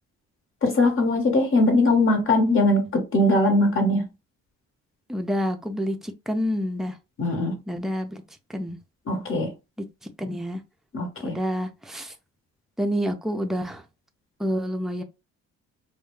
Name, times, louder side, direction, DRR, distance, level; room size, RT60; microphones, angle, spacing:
voice 1, 0.6-4.1 7.2-7.6 9.1-9.5 10.9-11.4, left 2 dB, 45° left, 1.0 m, -21 dB
voice 2, 5.1-7.0 7.7-8.2 8.5-8.8 9.8-10.6 11.2-12.1 12.8-13.8 14.4-15.0, equal, ahead, 0.4 m, -28 dB
2.3 x 2.1 x 3.0 m
cardioid pair, 90°, 30 cm